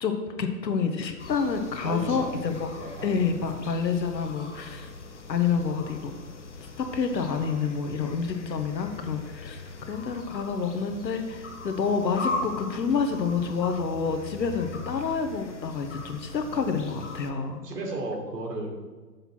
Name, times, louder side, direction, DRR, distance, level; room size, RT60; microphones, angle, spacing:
voice 1, 0.0-2.7 3.0-4.9 5.3-6.1 6.8-17.6, left 5 dB, 85° left, 6 dB, 1.2 m, -28 dB
sound 1, 1.2-17.3, left 3 dB, 45° left, 0.6 m, -40 dB
voice 2, 1.8-2.4 2.7-3.3 17.2-18.8, right 2 dB, 70° right, 1 dB, 2.0 m, -35 dB
6.7 x 4.3 x 6.1 m, 1.3 s
hypercardioid pair, 175°, 49 cm